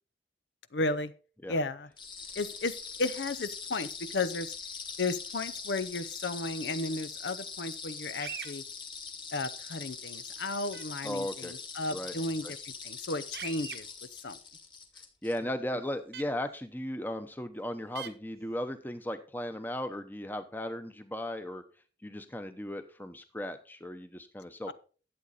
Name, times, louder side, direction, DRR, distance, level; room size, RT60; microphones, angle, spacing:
voice 1, 0.7-1.1 1.5-1.9 2.4-2.7 3.0-4.5 5.0-8.6 9.3-13.9 14.2-14.4 24.7-24.8, left 2 dB, 80° left, 13 dB, 0.7 m, -34 dB
sound 1, 2.0-15.4, left 5 dB, 25° left, 1.3 m, -42 dB
sound 2, 8.2-8.5 10.7-10.8 13.3-13.8 16.1-16.2 18.0-18.1, right 8 dB, 65° right, 1.0 m, -40 dB
voice 2, 11.0-11.5 11.9-12.1 12.4-12.5 15.2-21.6 22.0-24.7, left 1 dB, 10° left, 8 dB, 0.9 m, -36 dB
11.5 x 8.0 x 4.1 m, 0.38 s
head